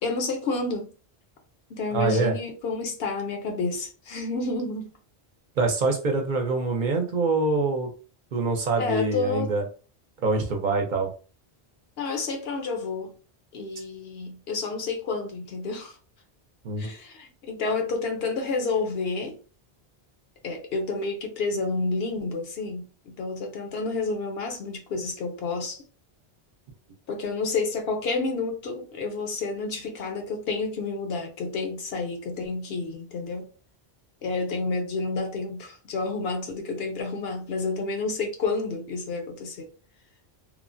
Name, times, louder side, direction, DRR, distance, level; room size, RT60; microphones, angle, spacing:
voice 1, 0.0-0.9 1.7-4.9 8.8-9.5 12.0-13.1 13.5-16.0 16.8-19.4 20.4-25.8 27.1-33.5 34.2-39.7, left 3 dB, 75° left, 0.9 m, -30 dB
voice 2, 1.9-2.3 5.6-7.9 8.3-9.6 10.2-11.1 16.6-16.9, right 3 dB, 55° right, 0.6 m, -25 dB
3.1 x 2.0 x 2.5 m
omnidirectional pair, 1.0 m